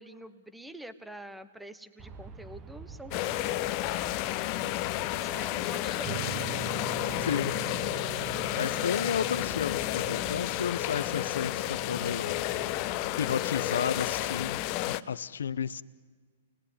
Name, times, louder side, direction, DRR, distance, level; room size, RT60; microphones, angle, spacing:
voice 1, 0.0-3.6 5.2-6.4, right 1 dB, 5° right, 12 dB, 0.9 m, -46 dB
Aircraft, 2.0-13.6, right 5 dB, 25° right, 1.1 m, -50 dB
sound 1, 3.1-15.0, left 15 dB, 40° left, 0.8 m, -31 dB
sound 2, 6.0-15.0, right 10 dB, 45° right, 1.9 m, -44 dB
voice 2, 7.2-7.5 8.6-12.3 13.2-15.8, left 7 dB, 80° left, 15 dB, 0.7 m, -32 dB
28.5 x 20.0 x 9.9 m, 1.5 s
hypercardioid pair, 125°, 0 cm